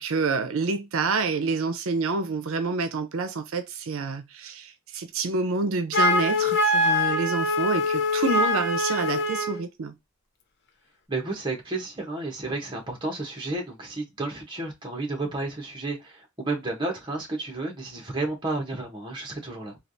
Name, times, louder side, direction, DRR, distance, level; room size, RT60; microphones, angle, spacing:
voice 1, 0.0-9.9, right 4 dB, 80° right, 0.5 m, -28 dB
Wind instrument woodwind instrument, 5.9-9.6, left 2 dB, 55° left, 0.5 m, -23 dB
voice 2, 11.1-19.8, right 2 dB, 20° right, 1.0 m, -32 dB
3.3 x 2.3 x 2.5 m
head